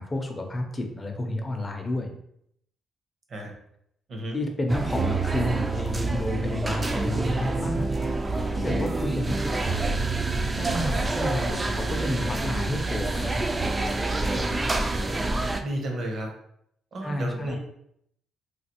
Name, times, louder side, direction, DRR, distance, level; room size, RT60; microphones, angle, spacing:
voice 1, 0.0-2.1 4.3-7.9 8.5-10.0 10.6-13.4 14.3-14.7 17.0-17.6, left 1 dB, 25° left, 4 dB, 0.6 m, -30 dB
sound 1, 4.7-15.6, right 3 dB, 25° right, 0.3 m, -27 dB
voice 2, 15.6-16.3 16.9-17.6, right 1 dB, 55° right, 2 dB, 0.8 m, -33 dB
3.1 x 2.4 x 2.9 m, 0.73 s
cardioid pair, 90°, 0 cm